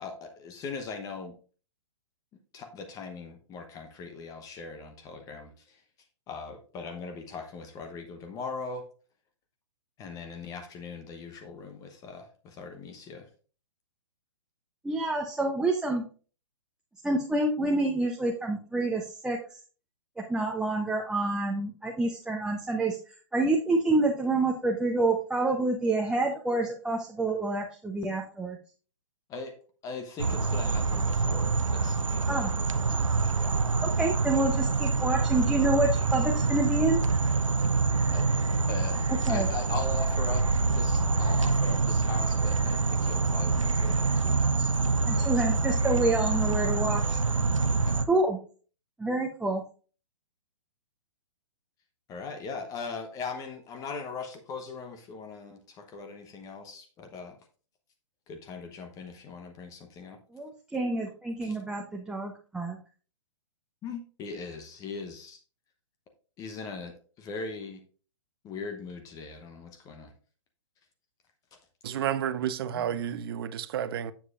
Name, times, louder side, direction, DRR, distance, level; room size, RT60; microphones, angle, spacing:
voice 1, 0.0-1.3 2.5-5.8 6.3-8.9 10.0-13.3 29.3-29.6 29.8-32.5 32.9-33.1 33.4-33.6 38.1-38.3 38.7-44.8 45.1-45.4 47.8-48.0 52.1-57.4 58.3-60.2 61.4-61.6 63.8-65.4 66.4-67.8 68.4-70.1 72.7-73.0, left 4 dB, 20° left, 1.0 m, -40 dB
voice 2, 14.8-16.1 17.0-19.4 20.2-28.6 32.3-32.5 33.8-37.0 39.3-39.5 45.1-47.2 48.1-48.4 49.0-49.6 60.3-62.8, right 2 dB, 5° right, 0.8 m, -28 dB
sound 1, 30.2-48.1, right 3 dB, 85° right, 0.7 m, -26 dB
voice 3, 71.8-74.1, right 9 dB, 50° right, 0.7 m, -31 dB
9.5 x 7.3 x 2.5 m
figure-of-eight pair, 120°, 16 cm